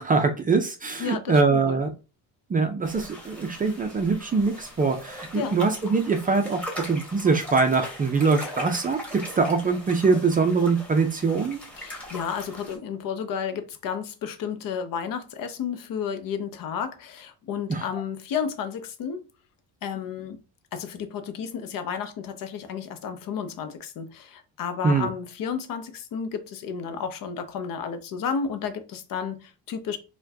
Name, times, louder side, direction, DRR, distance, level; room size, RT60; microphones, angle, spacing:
voice 1, 0.0-1.9 2.5-6.6 6.9-11.6 17.7-17.9 24.8-25.1, right 4 dB, 20° right, 0.4 m, -23 dB
voice 2, 1.0-1.8 5.3-5.6 11.8-19.2 19.8-20.4 20.7-30.0, left 7 dB, 55° left, 0.7 m, -32 dB
sound 1, 2.8-12.8, equal, 5° left, 1.4 m, -40 dB
4.4 x 2.2 x 2.7 m
cardioid pair, 120°, 39 cm